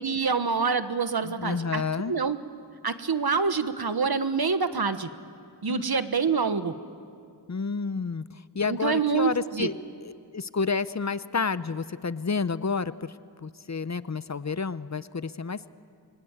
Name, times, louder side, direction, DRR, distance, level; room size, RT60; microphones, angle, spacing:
voice 1, 0.0-1.8 2.1-2.4 2.8-5.1 5.6-6.7 8.7-9.7, right 5 dB, 65° right, 11 dB, 1.3 m, -26 dB
voice 2, 1.2-2.2 5.7-5.9 7.5-9.7 10.0-13.1 13.4-15.7, left 5 dB, 40° left, 15 dB, 0.7 m, -30 dB
28.0 x 23.5 x 9.0 m, 2.3 s
wide cardioid pair, 75°, 41 cm